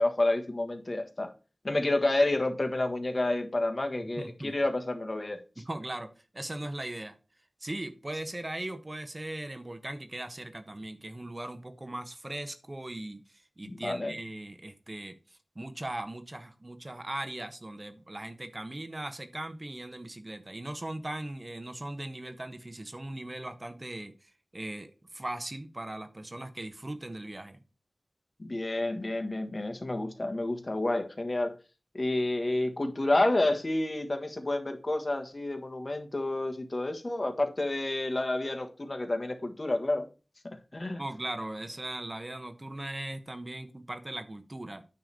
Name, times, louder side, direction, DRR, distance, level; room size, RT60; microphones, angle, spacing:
voice 1, 0.0-1.3 1.6-5.4 13.6-14.1 28.4-31.5 31.9-40.1 40.4-41.0, left 2 dB, 45° left, 1.4 m, -29 dB
voice 2, 4.2-4.5 5.7-7.2 7.6-27.6 30.7-30.8 41.0-44.8, right 1 dB, 35° right, 1.1 m, -39 dB
9.4 x 3.4 x 6.7 m
wide cardioid pair, 50°, 0 cm